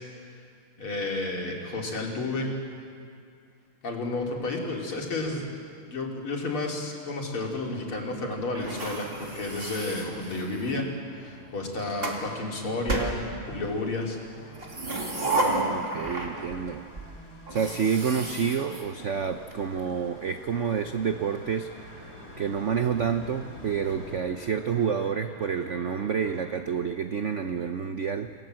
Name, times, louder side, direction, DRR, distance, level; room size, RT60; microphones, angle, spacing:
voice 1, 0.8-2.5 3.8-5.5 5.9-10.9 11.2-14.2, left 2 dB, 75° left, -1 dB, 4.1 m, -31 dB
sound 1, 7.6-26.6, equal, 5° left, 4.4 m, -52 dB
sound 2, 8.5-10.8 11.6-12.2 12.9-13.8 14.5-16.7 17.0-17.1 17.5-19.5, right 2 dB, 25° right, 2.7 m, -32 dB
sound 3, 13.4-24.2, left 1 dB, 50° left, 4.5 m, -50 dB
voice 2, 15.4-16.8 17.5-21.7 22.4-28.3, right 7 dB, 90° right, 8 dB, 0.6 m, -28 dB
28.0 x 19.5 x 7.8 m, 2.3 s
omnidirectional pair, 2.4 m